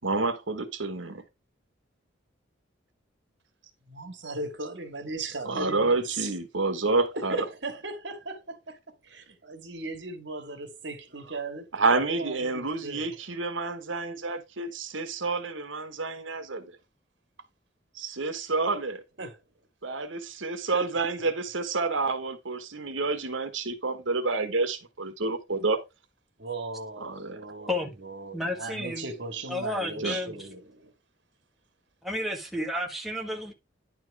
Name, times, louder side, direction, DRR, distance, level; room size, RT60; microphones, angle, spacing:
voice 1, 0.0-1.2 5.4-7.4 11.7-16.7 17.9-19.0 19.8-25.8 27.0-27.4 30.0-30.2, right 3 dB, 80° right, 1.4 m, -29 dB
voice 2, 3.8-6.3 7.1-8.7 9.0-13.2 19.2-19.4 20.7-20.9 26.4-30.9, right 3 dB, 65° right, 2.1 m, -37 dB
voice 3, 28.3-29.1 29.5-30.3 32.0-33.5, left 1 dB, ahead, 1.6 m, -31 dB
10.5 x 4.6 x 4.7 m
head